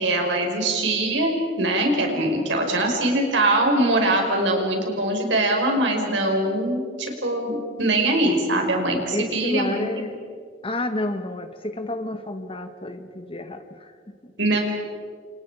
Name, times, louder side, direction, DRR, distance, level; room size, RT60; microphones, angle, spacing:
voice 1, 0.0-10.1 14.4-14.6, right 1 dB, 85° right, 2 dB, 5.4 m, -22 dB
voice 2, 9.1-10.2 10.6-14.3, left 1 dB, 30° left, 8 dB, 1.5 m, -30 dB
29.5 x 28.0 x 5.0 m, 2.1 s
head